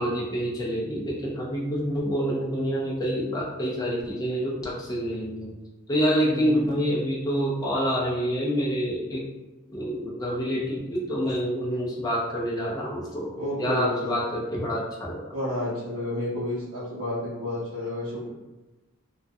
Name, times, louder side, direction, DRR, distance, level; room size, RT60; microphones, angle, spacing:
voice 1, 0.0-5.5 5.9-9.2 9.7-15.2, equal, 15° left, -4 dB, 0.4 m, -27 dB
voice 2, 6.2-6.7 13.3-14.1 15.3-18.3, left 1 dB, 80° right, -10 dB, 0.6 m, -31 dB
2.2 x 2.1 x 2.6 m, 1.1 s
head